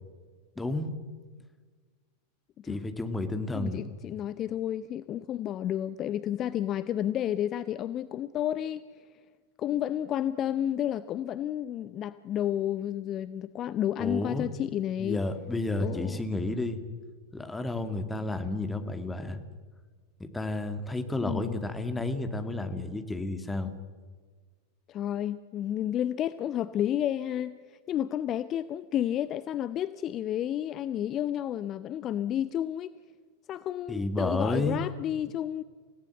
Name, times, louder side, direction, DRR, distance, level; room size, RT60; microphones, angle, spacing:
voice 1, 0.6-0.9 2.7-3.9 14.0-14.5 15.0-16.8 17.3-19.4 20.2-23.7 33.9-34.8, left 2 dB, 10° left, 8 dB, 2.2 m, -31 dB
voice 2, 3.5-8.8 9.6-15.2 15.8-16.2 21.2-21.6 24.9-32.9 33.5-35.6, left 11 dB, 30° left, 15 dB, 0.7 m, -31 dB
28.5 x 17.5 x 7.8 m, 1.5 s
figure-of-eight pair, 90°, 0 cm